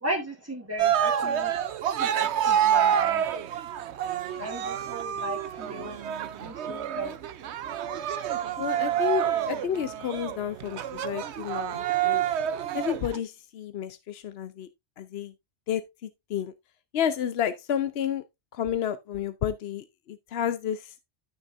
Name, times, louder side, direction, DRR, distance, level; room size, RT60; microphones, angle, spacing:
voice 1, 0.0-1.6 2.0-3.4 4.4-6.0 6.4-7.2, right 1 dB, 15° right, 1.3 m, -35 dB
Cheering, 0.8-13.2, right 9 dB, 80° right, 1.0 m, -28 dB
voice 2, 8.6-12.3 12.7-14.7 15.0-15.3 15.7-16.5 16.9-18.2 18.5-20.9, left 9 dB, 65° left, 0.9 m, -31 dB
13.0 x 6.3 x 2.5 m
omnidirectional pair, 1.2 m